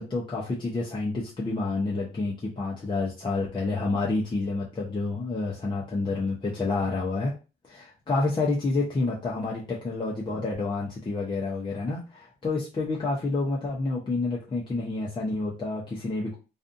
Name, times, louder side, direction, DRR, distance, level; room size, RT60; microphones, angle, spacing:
voice 1, 0.0-7.3 7.7-16.3, left 3 dB, 25° left, -4 dB, 0.7 m, -29 dB
2.5 x 2.3 x 2.5 m, 0.32 s
cardioid pair, 90°, 20 cm